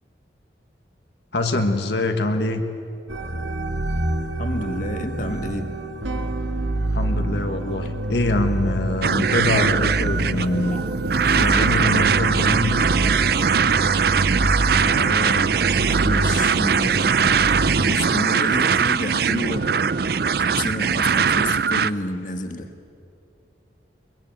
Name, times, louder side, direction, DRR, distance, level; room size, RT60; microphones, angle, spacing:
voice 1, 1.3-2.6 6.9-10.8 11.3-12.8, left 2 dB, 65° left, 5 dB, 1.4 m, -24 dB
sound 1, 3.1-17.9, right 1 dB, 90° right, 1.7 m, -27 dB
voice 2, 4.4-5.7 10.7-10.8 14.8-17.2 17.8-19.7 20.4-22.7, left 1 dB, 45° left, 6 dB, 1.5 m, -30 dB
sound 2, 9.0-21.9, right 6 dB, 55° right, 0.5 m, -21 dB
23.0 x 22.5 x 9.3 m, 2.5 s
head